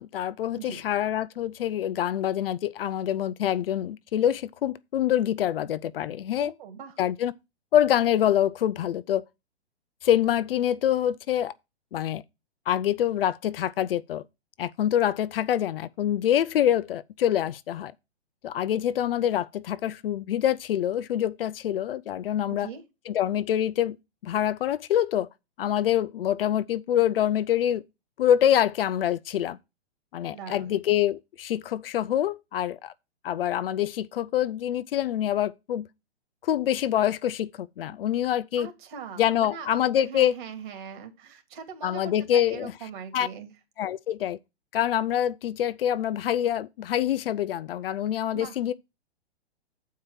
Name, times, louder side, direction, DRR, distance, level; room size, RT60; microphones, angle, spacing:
voice 1, 0.0-6.5 7.0-7.3 7.7-9.2 10.0-11.5 11.9-12.2 12.7-14.2 14.6-17.9 18.4-22.7 23.1-24.0 24.2-25.3 25.6-27.8 28.2-29.6 30.1-32.9 33.2-35.9 36.4-38.7 39.2-40.3 41.8-42.7 43.1-43.3 43.8-44.4 44.7-48.7, left 11 dB, 60° left, 0.5 m, -25 dB
voice 2, 6.4-7.0 22.5-22.8 30.3-30.8 38.6-43.5 48.3-48.6, right 7 dB, 50° right, 2.5 m, -41 dB
7.3 x 4.6 x 6.4 m
hypercardioid pair, 125°, 32 cm